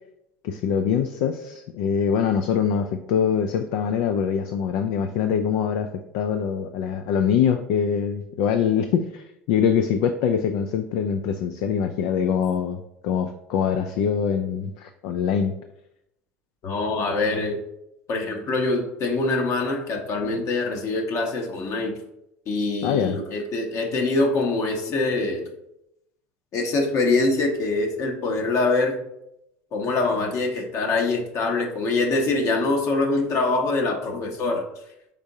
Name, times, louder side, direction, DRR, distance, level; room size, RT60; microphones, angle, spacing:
voice 1, 0.4-5.9 6.1-15.6 22.8-23.2, left 7 dB, 65° left, 7 dB, 0.4 m, -24 dB
voice 2, 16.6-17.6 18.1-22.0 22.5-25.5 26.5-29.0 29.7-34.6, left 3 dB, 50° left, 2 dB, 0.9 m, -24 dB
5.1 x 3.5 x 2.7 m, 0.83 s
hypercardioid pair, 80°, 7 cm